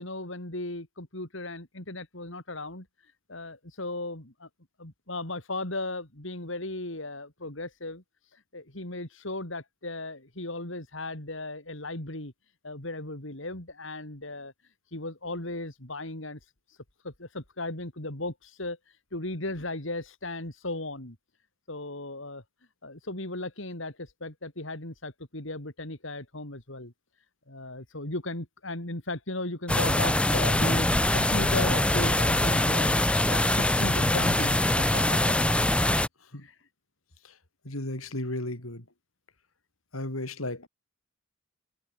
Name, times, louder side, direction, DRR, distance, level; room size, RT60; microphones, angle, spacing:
voice 1, 0.0-2.9 3.3-4.5 4.8-8.0 8.3-12.3 12.6-14.5 14.9-16.4 17.0-18.8 19.1-21.2 21.7-22.4 22.8-26.9 27.5-35.4 36.4-36.5, left 2 dB, 65° left, 3.8 m, -36 dB
sound 1, 29.7-36.1, left 1 dB, 5° left, 0.6 m, -23 dB
voice 2, 37.6-38.9 39.9-40.7, left 1 dB, 85° left, 5.3 m, -35 dB
head